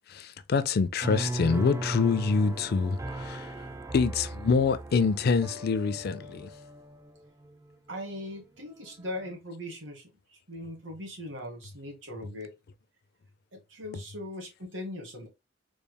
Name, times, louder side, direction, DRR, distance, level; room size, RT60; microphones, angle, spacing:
voice 1, 0.1-3.5 3.9-6.5, left 5 dB, 55° left, 0.4 m, -26 dB
sound 1, 1.0-8.2 8.7-9.3, right 1 dB, 15° right, 0.4 m, -38 dB
voice 2, 7.9-12.6 13.5-15.3, left 1 dB, 80° right, 1.7 m, -40 dB
4.1 x 3.4 x 2.2 m
head